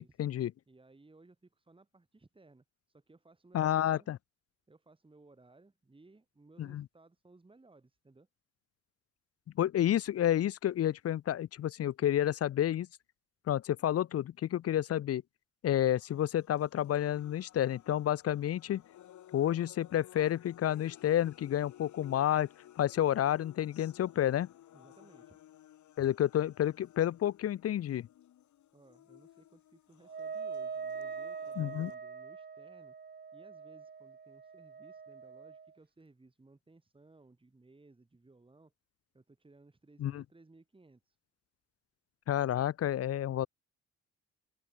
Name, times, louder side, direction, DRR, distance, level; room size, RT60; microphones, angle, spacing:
voice 1, 0.0-0.5 3.5-4.2 6.6-6.8 9.6-12.9 13.5-15.2 15.6-18.8 19.3-22.5 22.8-24.5 26.0-28.1 31.6-31.9 40.0-40.2 42.3-43.5, left 11 dB, 50° left, 0.6 m, -30 dB
voice 2, 0.7-4.1 4.7-8.3 24.7-25.4 28.7-33.0 33.3-38.7 39.1-41.2, right 3 dB, 15° right, 3.9 m, -61 dB
sound 1, 15.9-31.9, left 12 dB, 75° left, 3.6 m, -57 dB
Wind instrument woodwind instrument, 30.0-35.7, right 6 dB, 35° right, 1.7 m, -43 dB
cardioid pair, 90°, 30 cm